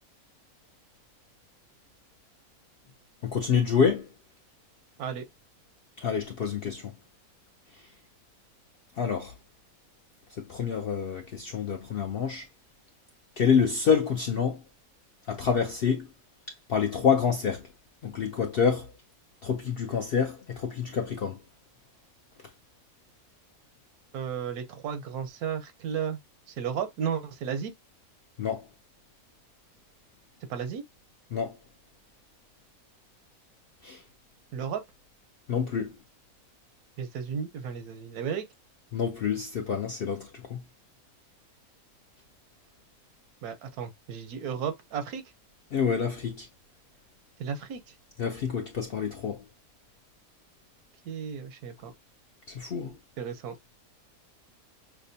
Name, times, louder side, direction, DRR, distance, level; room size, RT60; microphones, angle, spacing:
voice 1, 3.2-4.1 6.0-6.9 9.0-9.3 10.4-12.5 13.4-14.6 15.3-16.1 16.7-17.6 18.0-18.9 19.4-21.4 28.4-28.7 31.3-31.6 33.8-34.0 35.5-35.9 38.9-40.6 45.7-46.5 48.2-49.4 52.5-52.9, left 6 dB, 65° left, 0.5 m, -27 dB
voice 2, 24.1-26.2 26.6-27.7 30.5-30.8 34.5-34.8 37.0-38.5 43.4-45.2 47.4-47.8 51.1-51.9 53.2-53.5, right 7 dB, 90° right, 1.2 m, -33 dB
5.9 x 2.0 x 2.6 m
omnidirectional pair, 1.5 m